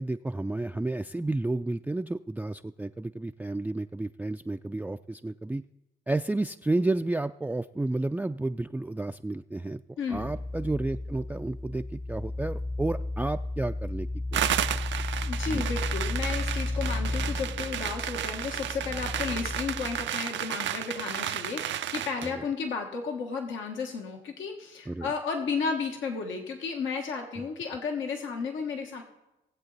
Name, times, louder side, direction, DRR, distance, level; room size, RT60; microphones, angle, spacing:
voice 1, 0.0-5.6 6.1-14.1 14.3-14.4 15.5-15.6 24.9-25.1, right 2 dB, 10° right, 8 dB, 0.3 m, -31 dB
voice 2, 10.0-10.3 15.2-29.0, left 5 dB, 85° left, 2 dB, 1.3 m, -33 dB
sound 1, 10.1-20.1, left 2 dB, 40° left, 0.8 m, -33 dB
sound 2, 14.3-22.3, right 10 dB, 75° right, 0.5 m, -33 dB
18.0 x 7.9 x 4.0 m, 0.94 s
supercardioid pair, 55°, 19 cm